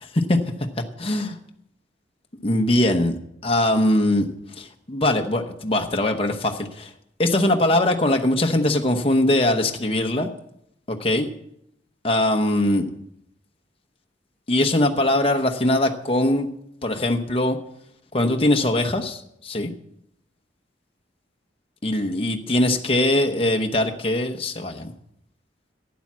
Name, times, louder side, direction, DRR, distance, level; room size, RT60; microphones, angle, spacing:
voice 1, 1.0-1.4 2.4-3.2 3.4-4.3 4.6-6.9 7.2-10.3 10.9-11.3 12.0-12.9 14.5-16.5 16.8-17.6 18.1-19.7 21.8-24.9, left 1 dB, 30° left, 4 dB, 1.0 m, -21 dB
12.0 x 9.5 x 7.4 m, 0.76 s
head